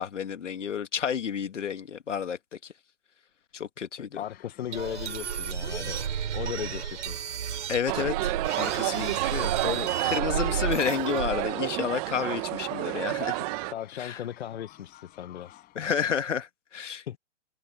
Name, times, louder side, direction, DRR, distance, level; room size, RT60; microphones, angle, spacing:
voice 1, 0.0-2.7 3.5-4.2 7.7-13.4 14.0-14.2 15.7-17.2, left 7 dB, 80° left, 2.3 m, -31 dB
voice 2, 4.0-6.0 6.3-7.2 13.7-15.7 17.1-17.2, left 10 dB, 60° left, 1.3 m, -37 dB
sound 1, 4.1-16.0, left 15 dB, 25° left, 5.5 m, -54 dB
sound 2, 4.7-11.5, right 8 dB, 70° right, 6.5 m, -32 dB
sound 3, 7.9-13.7, right 25 dB, 30° right, 1.3 m, -30 dB
hypercardioid pair, 135°, 36 cm